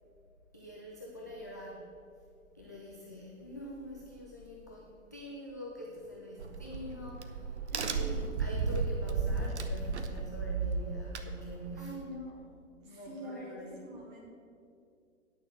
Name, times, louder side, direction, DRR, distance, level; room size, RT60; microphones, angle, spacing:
voice 1, 0.5-1.9 2.5-7.5 7.9-11.9 12.8-13.8, equal, 15° left, -4 dB, 0.4 m, -45 dB
Crack, 6.4-11.8, right 4 dB, 55° right, 1.0 m, -34 dB
voice 2, 7.7-8.2 11.8-12.4 12.8-14.3, right 1 dB, 30° right, -3 dB, 3.0 m, -45 dB
9.7 x 6.0 x 7.7 m, 2.4 s
figure-of-eight pair, 125°, 41 cm